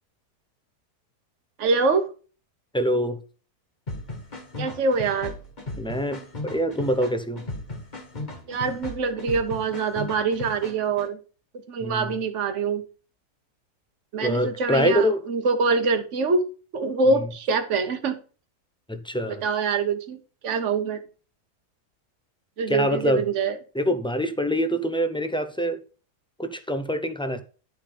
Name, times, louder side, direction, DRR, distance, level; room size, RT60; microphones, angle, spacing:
voice 1, 1.6-2.1 4.6-5.3 8.5-11.2 11.7-12.8 14.1-16.4 16.7-18.1 19.3-20.2 20.4-21.0 22.6-23.6, right 4 dB, 50° right, 1.4 m, -24 dB
voice 2, 2.7-3.2 5.8-7.4 11.8-12.1 14.2-15.2 18.9-19.4 22.7-23.2 23.7-25.8 26.4-27.4, equal, 10° left, 0.3 m, -25 dB
sound 1, 3.9-11.1, left 2 dB, 30° left, 1.5 m, -37 dB
10.5 x 5.3 x 5.2 m
omnidirectional pair, 1.7 m